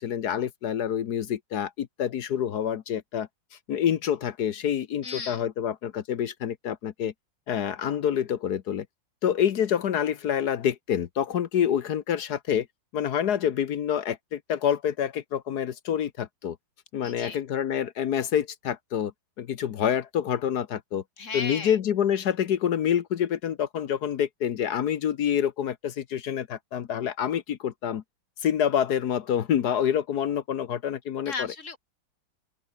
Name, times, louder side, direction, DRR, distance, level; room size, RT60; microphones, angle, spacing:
voice 1, 0.0-3.3 3.7-7.1 7.5-8.9 9.2-12.7 12.9-16.6 16.9-19.1 19.4-21.0 21.3-28.0 28.4-31.5, left 9 dB, 60° left, 1.4 m, -27 dB
voice 2, 5.0-5.4 17.0-17.4 21.2-21.8 31.3-31.8, left 4 dB, 40° left, 3.5 m, -35 dB
open air
omnidirectional pair, 2.1 m